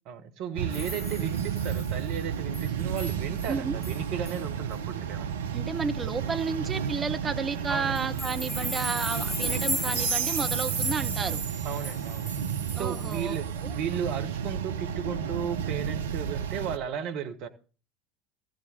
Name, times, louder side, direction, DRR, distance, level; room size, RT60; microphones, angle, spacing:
voice 1, 0.1-5.3 7.7-8.0 11.6-12.4 12.8-13.5 13.7-17.5, right 8 dB, 55° right, 1.3 m, -35 dB
sound 1, 0.6-16.8, right 8 dB, 75° right, 0.7 m, -32 dB
sound 2, 0.7-1.9 2.5-2.7 3.0-3.1 3.4-3.5 3.8-4.0 4.3-4.4 8.0-13.4, equal, 5° left, 2.4 m, -35 dB
voice 2, 3.5-3.8 5.5-11.4 12.7-13.7, right 5 dB, 25° right, 1.1 m, -32 dB
14.5 x 5.3 x 6.9 m
figure-of-eight pair, 75°, 0 cm